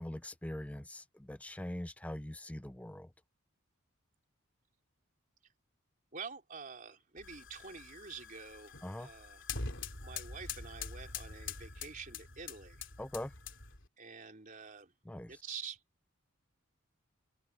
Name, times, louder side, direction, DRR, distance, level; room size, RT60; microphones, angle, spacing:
voice 1, 0.0-3.1 8.8-9.1 13.0-13.3 15.1-15.4, left 1 dB, 5° left, 0.4 m, -42 dB
voice 2, 6.1-9.4 10.0-12.9 14.0-14.9 15.3-15.8, right 5 dB, 40° right, 3.8 m, -47 dB
sound 1, 7.2-13.9, left 5 dB, 60° left, 3.4 m, -44 dB
open air
head